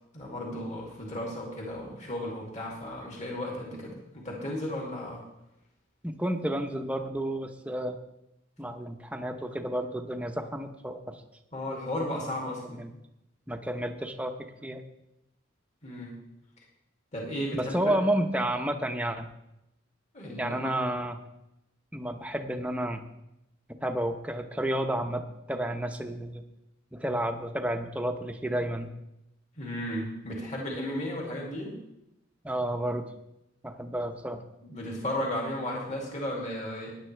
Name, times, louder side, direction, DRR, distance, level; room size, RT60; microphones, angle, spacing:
voice 1, 0.1-5.2 11.5-12.8 15.8-16.1 16.6-16.7 17.1-18.0 20.1-20.7 29.6-31.8 34.6-37.0, left 1 dB, 35° left, -2 dB, 2.5 m, -34 dB
voice 2, 6.0-8.0 8.6-11.2 12.7-12.9 13.5-14.8 17.5-19.3 20.4-21.2 21.9-23.0 23.8-26.4 26.9-28.9 32.4-33.1 33.6-34.4, right 1 dB, 5° right, 5 dB, 0.8 m, -31 dB
17.0 x 10.5 x 3.3 m, 0.87 s
head